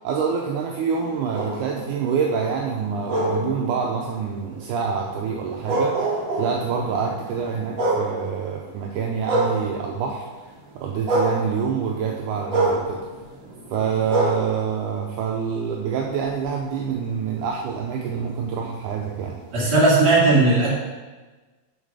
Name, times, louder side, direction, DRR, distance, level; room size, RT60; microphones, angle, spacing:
voice 1, 0.0-10.3 10.8-13.0 13.7-19.4, right 6 dB, 80° right, 0 dB, 1.9 m, -26 dB
sound 1, 0.9-10.2 10.5-15.8 16.2-19.8, right 2 dB, 55° right, 1.3 m, -29 dB
voice 2, 19.5-20.7, right 3 dB, 35° right, -7 dB, 2.3 m, -17 dB
7.3 x 4.1 x 4.9 m, 1.3 s
omnidirectional pair, 4.0 m